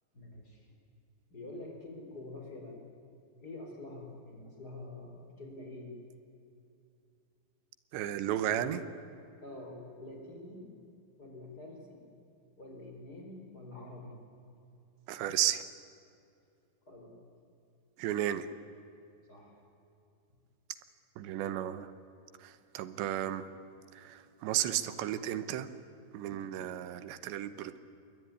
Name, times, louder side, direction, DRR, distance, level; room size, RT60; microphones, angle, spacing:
voice 1, 0.1-0.8 1.3-2.8 3.4-6.0 8.5-8.8 9.4-10.7 11.2-12.1 12.6-14.2 16.8-17.2 19.2-19.6, left 2 dB, 20° left, 1 dB, 4.8 m, -46 dB
voice 2, 7.9-8.8 15.1-15.6 18.0-18.5 21.2-21.9 22.4-23.4 23.9-25.7 26.1-27.8, right 12 dB, 85° right, 13 dB, 3.4 m, -33 dB
27.5 x 22.0 x 9.7 m, 2.6 s
omnidirectional pair, 5.0 m